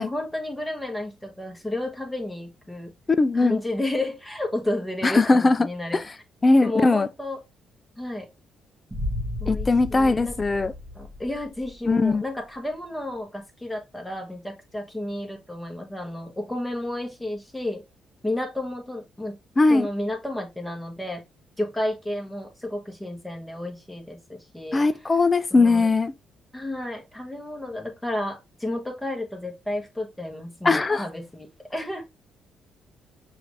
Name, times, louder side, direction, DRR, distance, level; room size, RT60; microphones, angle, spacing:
voice 1, 0.0-2.9 3.3-6.0 6.6-7.4 8.0-8.3 9.4-10.4 10.6-17.8 18.2-19.4 19.7-21.2 21.6-24.8 25.5-25.9 26.5-32.0, left 1 dB, 10° left, 1.3 m, -32 dB
voice 2, 3.2-3.6 5.0-5.7 5.9-6.0 6.4-7.1 9.5-10.7 11.9-12.2 19.6-19.9 24.7-26.1 30.6-31.0, left 3 dB, 25° left, 0.4 m, -20 dB
Boom, 8.9-11.9, left 2 dB, 20° right, 1.8 m, -33 dB
5.7 x 2.6 x 3.2 m
cardioid pair, 90°, 0 cm